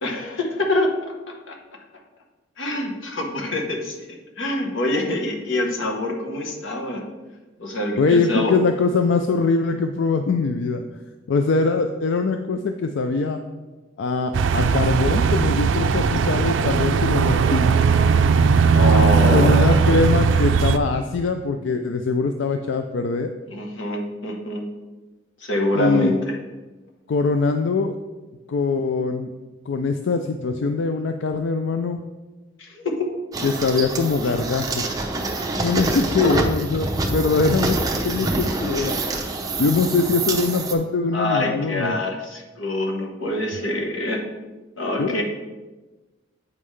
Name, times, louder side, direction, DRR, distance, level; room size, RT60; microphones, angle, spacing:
voice 1, 0.0-0.9 1.5-1.6 2.6-4.0 4.4-7.0 7.6-8.5 18.7-19.7 23.5-24.6 25.4-26.3 32.6-33.1 34.2-34.3 36.2-36.3 41.1-44.2 44.8-45.2, left 1 dB, 85° left, 1 dB, 1.2 m, -25 dB
voice 2, 8.0-10.8 11.3-13.4 14.0-17.6 19.3-23.3 25.7-26.1 27.1-27.9 28.5-29.3 29.7-32.0 33.4-34.8 35.6-39.0 39.6-42.0 45.0-45.2, left 4 dB, 70° left, 6 dB, 0.4 m, -22 dB
sound 1, 14.3-20.8, right 5 dB, 70° right, 0.4 m, -18 dB
sound 2, 33.3-40.7, right 2 dB, 20° right, 0.6 m, -26 dB
8.0 x 5.5 x 3.3 m, 1.2 s
head